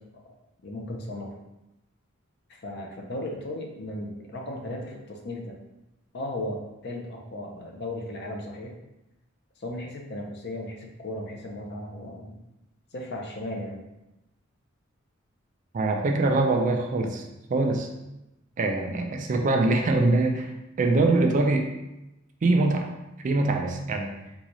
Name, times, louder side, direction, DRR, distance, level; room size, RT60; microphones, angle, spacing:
voice 1, 0.6-1.3 2.5-5.6 6.1-8.7 9.6-12.4 12.9-13.8, left 1 dB, 50° left, 1 dB, 0.6 m, -36 dB
voice 2, 15.7-17.2 17.5-17.9 18.6-20.5 20.8-21.7 22.4-22.9 23.2-24.1, right 2 dB, 35° right, 3 dB, 0.3 m, -23 dB
3.8 x 2.3 x 3.0 m, 0.94 s
head